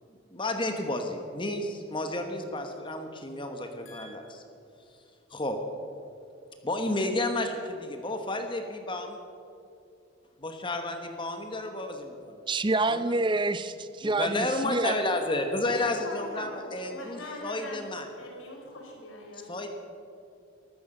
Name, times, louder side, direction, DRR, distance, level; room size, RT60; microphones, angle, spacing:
voice 1, 0.3-4.4 5.3-5.6 6.6-9.2 10.4-12.4 12.9-13.1 14.0-18.1 19.3-19.7, left 2 dB, 25° left, 5 dB, 1.1 m, -31 dB
voice 2, 12.5-15.0, right 2 dB, 25° right, 13 dB, 0.5 m, -27 dB
voice 3, 15.7-17.9 18.2-19.5, left 2 dB, 75° left, -1 dB, 4.6 m, -42 dB
13.5 x 13.5 x 6.7 m, 2.6 s
head